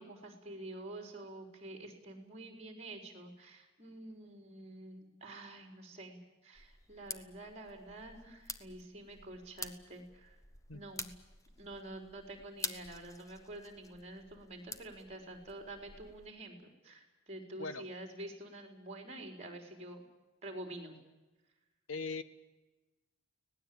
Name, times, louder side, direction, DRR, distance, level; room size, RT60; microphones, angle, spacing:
voice 1, 0.0-10.4 10.7-11.1 11.6-20.0 20.4-21.0, right 1 dB, 30° right, 3 dB, 4.7 m, -48 dB
sound 1, 6.5-16.3, left 3 dB, 15° left, 1.2 m, -48 dB
voice 2, 21.9-22.2, left 4 dB, 75° left, 12 dB, 1.5 m, -39 dB
25.0 x 18.5 x 8.9 m, 1.1 s
head